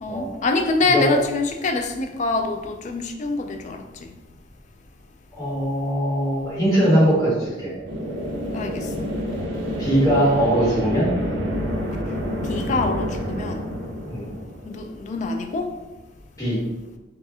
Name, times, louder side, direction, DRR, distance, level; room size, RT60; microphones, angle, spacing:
voice 1, 0.0-4.1 8.5-9.1 12.5-13.6 14.6-15.8, left 3 dB, 40° left, 5 dB, 0.4 m, -25 dB
voice 2, 5.3-7.7 9.8-11.1 14.1-14.3 16.4-16.6, equal, 15° left, -9 dB, 1.3 m, -20 dB
sound 1, 7.9-15.4, equal, 70° right, 0.7 m, -28 dB
4.7 x 2.5 x 2.7 m, 1.1 s
head